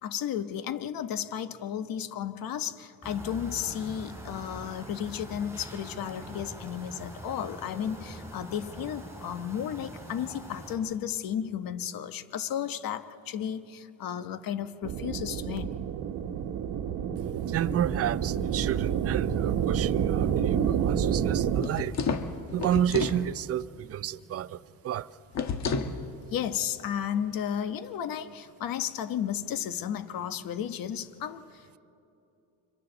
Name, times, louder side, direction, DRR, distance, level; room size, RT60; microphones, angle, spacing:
voice 1, 0.0-15.7 26.3-31.8, left 9 dB, 65° left, 1.2 m, -33 dB
sound 1, 3.0-10.8, right 1 dB, 10° right, 5.6 m, -43 dB
sound 2, 14.8-21.6, right 8 dB, 65° right, 1.2 m, -28 dB
voice 2, 17.2-22.0 22.5-25.1, right 10 dB, 40° right, 0.5 m, -31 dB
sound 3, 21.6-23.2 25.3-26.0, left 5 dB, 45° left, 1.4 m, -30 dB
29.5 x 25.5 x 4.0 m
cardioid pair, 125°, 37 cm